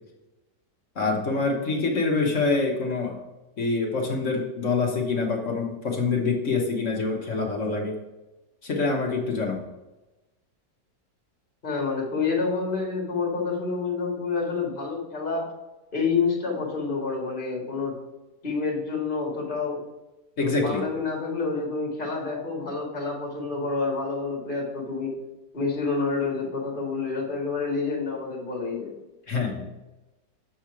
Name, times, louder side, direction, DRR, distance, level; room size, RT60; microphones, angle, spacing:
voice 1, 0.9-3.2 3.6-8.0 8.6-9.6 20.4-20.8 29.3-29.6, left 3 dB, 45° left, 0 dB, 1.4 m, -25 dB
voice 2, 11.6-15.5 15.9-17.9 18.4-19.8 20.4-25.1 25.5-28.9, left 4 dB, 30° left, -3 dB, 2.2 m, -28 dB
7.5 x 4.4 x 4.7 m, 1.0 s
omnidirectional pair, 1.9 m